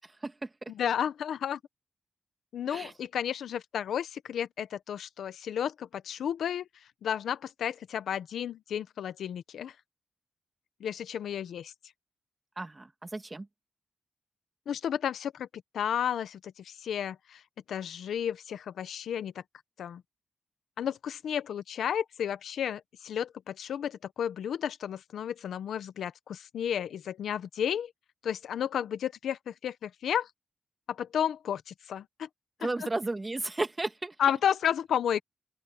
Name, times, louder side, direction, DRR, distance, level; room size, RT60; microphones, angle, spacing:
voice 1, 0.7-1.6 2.5-6.6 7.0-9.7 10.8-11.7 14.7-15.5 15.7-17.4 17.7-19.4 19.8-20.0 20.8-27.9 28.2-30.3 30.9-32.3 32.8-32.9 34.2-35.2, left 9 dB, 85° left, 1.0 m, -32 dB
voice 2, 12.6-13.5 32.6-34.1, right 2 dB, 25° right, 2.5 m, -33 dB
open air
cardioid pair, 65°, 0 cm